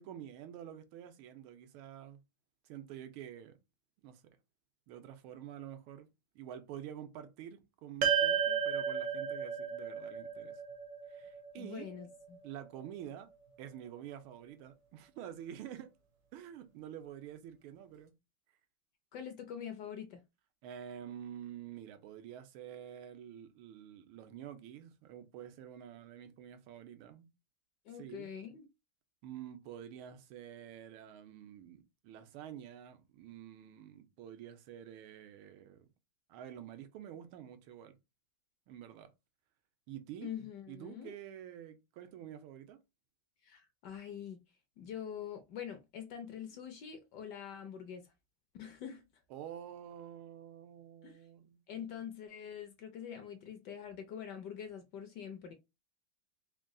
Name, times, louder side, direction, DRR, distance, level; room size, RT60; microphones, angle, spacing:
voice 1, 0.0-2.2 2.6-3.6 4.0-4.2 4.9-6.1 6.3-10.6 11.1-11.9 12.4-13.3 13.6-15.9 16.3-18.1 20.6-27.3 28.0-28.3 29.2-35.9 36.3-37.9 38.7-39.1 39.9-40.3 40.7-42.8 49.3-51.6, right 10 dB, 85° right, 1.5 m, -48 dB
sound 1, 8.0-12.5, right 7 dB, 65° right, 1.2 m, -34 dB
voice 2, 11.6-12.4 19.1-20.2 27.8-28.7 40.2-41.2 43.4-44.4 44.8-48.1 48.6-49.0 51.0-51.2 51.7-55.5, left 8 dB, 70° left, 1.1 m, -45 dB
4.0 x 2.3 x 3.7 m
omnidirectional pair, 2.3 m